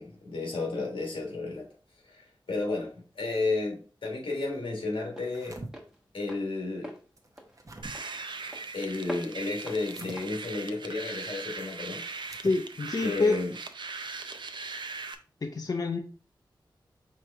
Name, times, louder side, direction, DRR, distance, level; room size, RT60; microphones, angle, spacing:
voice 1, 0.0-1.7 2.0-5.6 6.1-7.0 8.7-12.2 13.0-13.5, left 3 dB, 90° left, 1.5 m, -32 dB
Walk footsteps, 2.9-11.6, equal, 5° right, 1.0 m, -47 dB
sound 1, 5.1-5.7 7.2-7.9 9.8-10.2 12.2-12.6, right 2 dB, 40° right, 0.8 m, -44 dB
sound 2, 7.8-15.1, right 4 dB, 65° right, 0.5 m, -40 dB
voice 2, 12.4-13.4 15.4-16.0, left 3 dB, 45° left, 0.6 m, -27 dB
4.7 x 3.1 x 3.5 m
wide cardioid pair, 70°, 9 cm